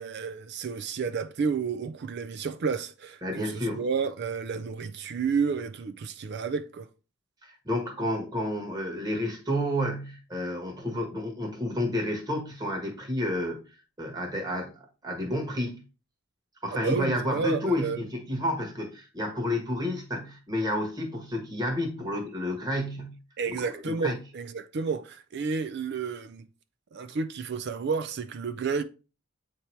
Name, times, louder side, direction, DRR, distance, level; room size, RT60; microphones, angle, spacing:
voice 1, 0.0-6.9 16.8-18.0 23.4-26.5 26.9-28.8, right 5 dB, 55° right, 0.4 m, -31 dB
voice 2, 3.2-3.8 7.4-13.6 14.0-14.7 15.0-15.8 16.6-23.1 23.4-23.6 23.8-24.2, left 1 dB, 20° right, 1.3 m, -30 dB
8.1 x 2.9 x 4.4 m
head